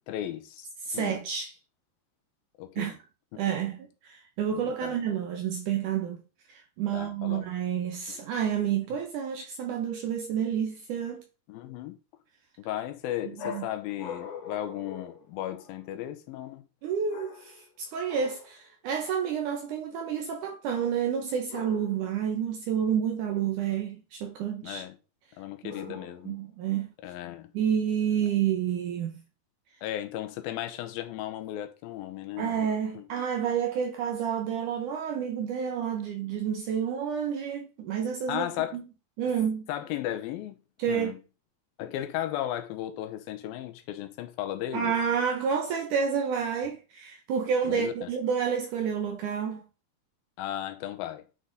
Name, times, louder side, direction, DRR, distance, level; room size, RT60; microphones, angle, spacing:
voice 1, 0.1-0.7 0.9-1.2 2.6-2.9 4.5-5.0 6.9-7.5 8.1-8.2 11.5-12.0 12.7-16.6 24.6-25.0 25.4-26.4 27.0-27.5 29.8-32.6 32.9-33.1 38.3-38.8 39.7-40.6 40.9-41.2 41.8-45.0 47.7-48.1 50.4-51.2, left 12 dB, 80° left, 2.4 m, -35 dB
voice 2, 0.8-1.5 2.8-3.0 3.4-6.2 6.5-11.2 13.4-13.7 16.8-24.8 25.6-26.0 26.3-26.9 27.5-29.1 32.4-38.5 38.7-38.8 39.2-39.7 40.8-41.2 44.7-49.6, right 8 dB, 75° right, 1.9 m, -29 dB
sound 1, 13.4-15.9 17.1-17.7 18.1-18.5 21.5-22.2 25.7-26.4, left 6 dB, 60° left, 2.4 m, -42 dB
9.5 x 3.8 x 3.9 m
omnidirectional pair, 4.6 m